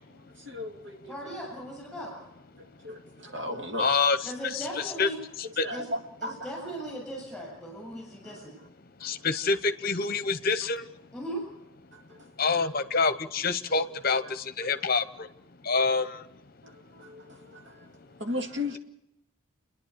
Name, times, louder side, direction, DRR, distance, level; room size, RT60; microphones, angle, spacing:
voice 1, 0.1-1.4 2.6-3.9 5.6-6.5 8.2-8.4 9.0-9.2 11.9-12.2 16.6-17.9 18.2-18.8, left 1 dB, 55° right, 4 dB, 2.2 m, -37 dB
voice 2, 1.1-2.1 4.2-5.2 5.7-5.9 6.2-8.6 11.1-11.4, right 1 dB, ahead, -2 dB, 7.4 m, -38 dB
voice 3, 3.8-5.1 5.4-5.7 9.0-10.8 12.4-15.0 15.6-16.2, left 4 dB, 45° left, 13 dB, 0.9 m, -27 dB
29.5 x 10.5 x 8.5 m, 0.83 s
head